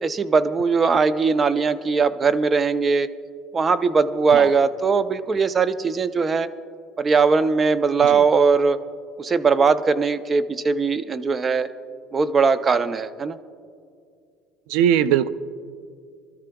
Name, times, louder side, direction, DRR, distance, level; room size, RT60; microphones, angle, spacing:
voice 1, 0.0-3.1 3.5-6.5 7.0-8.8 9.2-11.7 12.1-13.4, right 5 dB, 25° right, 13 dB, 0.5 m, -20 dB
voice 2, 14.7-15.3, right 10 dB, 80° right, 15 dB, 0.4 m, -19 dB
25.0 x 13.0 x 2.3 m, 2.3 s
cardioid pair, 130°, 0 cm